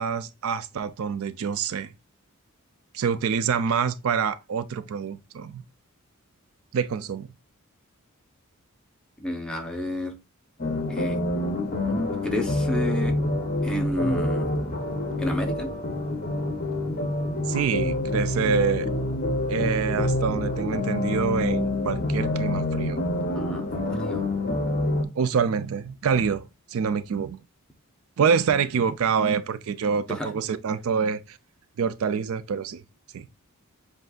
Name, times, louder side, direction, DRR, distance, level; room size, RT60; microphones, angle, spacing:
voice 1, 0.0-1.9 2.9-5.6 6.7-7.3 17.5-18.9 19.5-23.0 25.2-27.4 28.2-31.4 31.8-32.8 33.1-33.3, right 6 dB, 65° right, 0.4 m, -26 dB
voice 2, 9.2-10.1 10.9-11.2 11.8-13.2 13.6-14.5 15.2-15.7 23.3-23.7 23.9-24.3 30.1-30.3, equal, 5° left, 0.8 m, -30 dB
sound 1, 10.6-25.0, left 1 dB, 40° left, 0.8 m, -27 dB
7.6 x 2.6 x 2.3 m
head